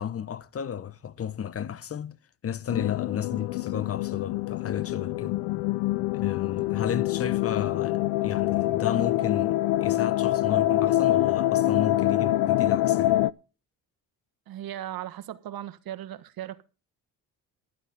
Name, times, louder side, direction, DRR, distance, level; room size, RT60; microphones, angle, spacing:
voice 1, 0.0-2.2 2.4-5.4 6.1-13.2, left 8 dB, 35° left, 0.9 m, -33 dB
sound 1, 2.7-13.3, left 15 dB, 85° left, 0.6 m, -25 dB
voice 2, 14.5-16.6, right 12 dB, 60° right, 1.3 m, -37 dB
12.0 x 10.0 x 5.4 m
supercardioid pair, 75°, 40 cm